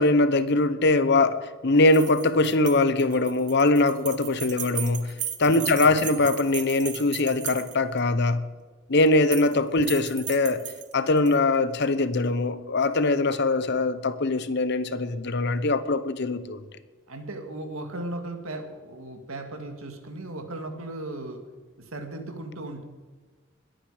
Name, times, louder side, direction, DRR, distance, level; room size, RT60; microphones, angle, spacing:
voice 1, 0.0-5.1 5.4-8.4 8.9-10.6 10.9-16.6, left 2 dB, 55° left, 0.8 m, -22 dB
sound 1, 1.9-8.0 9.1-9.6 9.8-11.4, right 11 dB, 40° right, 1.1 m, -36 dB
voice 2, 5.5-6.0 13.7-13.9 17.1-21.4 21.8-22.8, right 2 dB, 85° right, 2.0 m, -37 dB
21.0 x 8.9 x 5.0 m
head